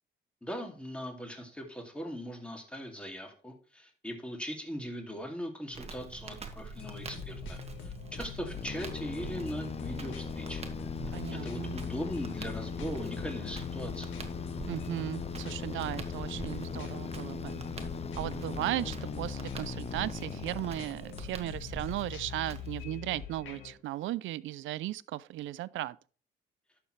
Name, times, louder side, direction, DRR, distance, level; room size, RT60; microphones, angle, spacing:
voice 1, 0.4-10.6 11.3-14.1, equal, 5° left, 2.5 m, -40 dB
Crackle, 5.7-22.8, right 4 dB, 30° right, 1.6 m, -46 dB
sound 1, 6.7-23.7, left 8 dB, 80° left, 1.9 m, -44 dB
sound 2, 8.5-21.4, left 6 dB, 30° left, 0.6 m, -39 dB
voice 2, 11.1-11.8 14.7-17.6 18.2-26.0, right 15 dB, 80° right, 0.5 m, -36 dB
11.5 x 6.9 x 3.2 m
cardioid pair, 90°, 20 cm